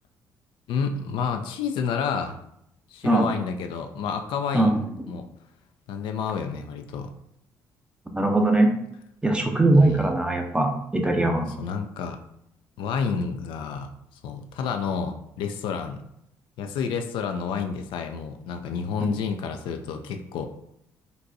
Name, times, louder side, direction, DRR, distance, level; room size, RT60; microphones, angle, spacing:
voice 1, 0.7-2.4 2.9-4.7 5.1-5.3 5.9-7.1 9.7-10.1 11.6-12.2 12.8-13.9 14.2-16.0 16.6-20.5, left 6 dB, 70° left, 6 dB, 0.4 m, -29 dB
voice 2, 8.1-8.7 9.2-11.5 19.0-19.1, right 2 dB, 10° right, 3 dB, 0.7 m, -21 dB
3.9 x 2.2 x 2.6 m, 0.76 s
hypercardioid pair, 55°, 9 cm